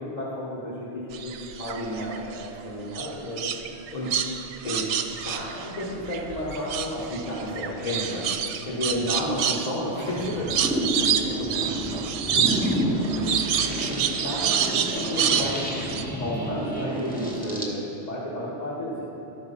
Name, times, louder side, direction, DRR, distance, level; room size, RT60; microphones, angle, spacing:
voice 1, 0.0-3.5 3.9-4.1 4.6-4.9 5.2-10.6 11.2-11.8 12.3-12.6 13.1-13.4 13.9-15.7 16.2-17.8 18.1-19.0, left 1 dB, 35° left, -9 dB, 1.5 m, -32 dB
sound 1, 1.1-2.5 2.9-6.2 6.5-16.0, right 8 dB, 80° right, 0.9 m, -28 dB
sound 2, 5.1-7.2 7.8-8.2 8.9-17.7, equal, 10° left, 0.9 m, -31 dB
13.0 x 4.4 x 5.7 m, 2.8 s
omnidirectional pair, 1.2 m